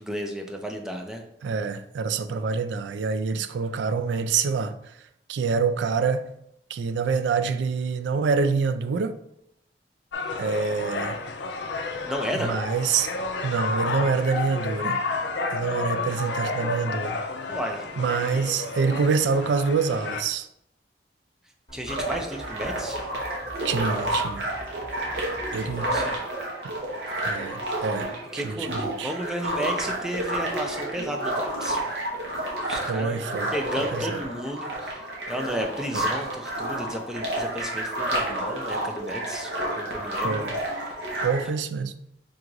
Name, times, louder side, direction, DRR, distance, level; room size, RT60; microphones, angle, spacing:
voice 1, 0.0-1.2 12.1-12.5 17.5-17.9 21.7-23.0 25.5-26.2 28.1-31.8 32.4-33.2 33.5-40.5, equal, 5° right, 0.5 m, -33 dB
voice 2, 1.4-4.7 5.3-6.3 6.7-9.1 10.4-11.2 12.4-13.1 13.4-15.0 15.5-17.2 18.0-20.5 23.6-24.5 25.5-25.9 27.2-29.1 32.9-33.5 33.9-34.2 35.9-36.0 40.2-40.5 41.2-41.9, right 5 dB, 85° right, 0.3 m, -26 dB
sound 1, 10.1-20.2, left 3 dB, 70° left, 0.4 m, -31 dB
sound 2, 21.7-26.1, equal, 30° left, 1.0 m, -45 dB
sound 3, 21.9-41.5, right 1 dB, 70° right, 1.2 m, -30 dB
3.8 x 2.5 x 4.5 m
head